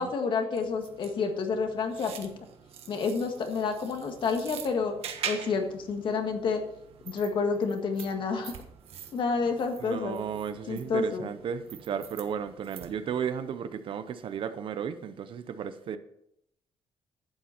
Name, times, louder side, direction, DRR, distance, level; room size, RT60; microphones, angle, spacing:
voice 1, 0.0-2.3 2.9-4.9 5.2-6.6 7.0-8.5 9.1-10.2 10.7-11.3, left 4 dB, 55° left, 1.7 m, -29 dB
sound 1, 0.5-13.2, right 8 dB, 75° right, 1.4 m, -44 dB
voice 2, 9.8-16.0, right 7 dB, 60° right, 0.8 m, -34 dB
11.5 x 9.0 x 4.4 m
cardioid pair, 160°, 10 cm